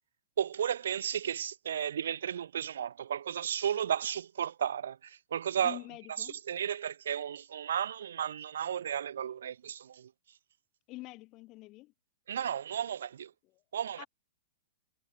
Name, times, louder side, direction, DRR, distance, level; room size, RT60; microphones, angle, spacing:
voice 1, 0.4-5.8 6.2-10.1 12.3-13.3 13.7-14.1, right 9 dB, 80° right, 0.5 m, -34 dB
voice 2, 5.6-6.4 10.9-11.9 13.4-13.6 14.0-14.1, left 20 dB, 25° left, 1.3 m, -46 dB
hypercardioid pair, 170°, 0 cm